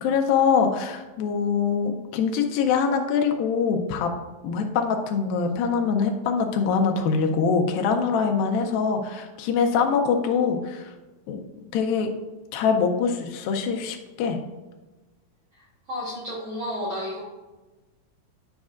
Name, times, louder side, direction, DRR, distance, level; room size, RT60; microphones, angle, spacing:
voice 1, 0.0-4.1 4.4-10.9 11.3-11.4 11.7-12.1 12.5-14.4, left 6 dB, 80° left, 3 dB, 2.4 m, -23 dB
voice 2, 15.5-17.2, left 1 dB, 70° right, -5 dB, 1.4 m, -32 dB
10.5 x 5.2 x 2.4 m, 1.2 s
omnidirectional pair, 4.3 m